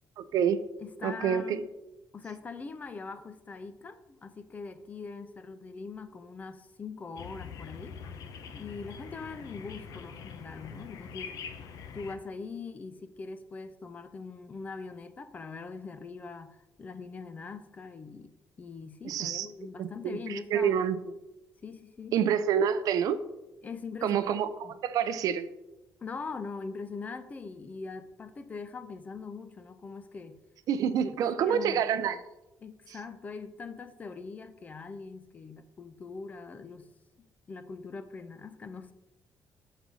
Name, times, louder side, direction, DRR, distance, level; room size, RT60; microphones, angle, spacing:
voice 1, 0.2-0.6 1.0-1.6 19.0-19.5 19.8-20.2 20.5-21.0 22.1-23.2 24.0-25.5 30.7-32.2, right 8 dB, 65° right, 12 dB, 0.5 m, -27 dB
voice 2, 0.8-1.7 2.1-8.0 8.5-11.4 11.9-18.3 18.6-20.8 21.6-22.2 23.6-24.2 24.6-24.8 26.0-30.4 31.0-31.8 32.6-36.9 37.2-38.9, left 4 dB, 25° left, 11 dB, 0.5 m, -42 dB
sound 1, 7.2-12.2, left 6 dB, 65° left, 0.7 m, -44 dB
6.9 x 4.0 x 6.1 m, 0.96 s
cardioid pair, 170°, 7 cm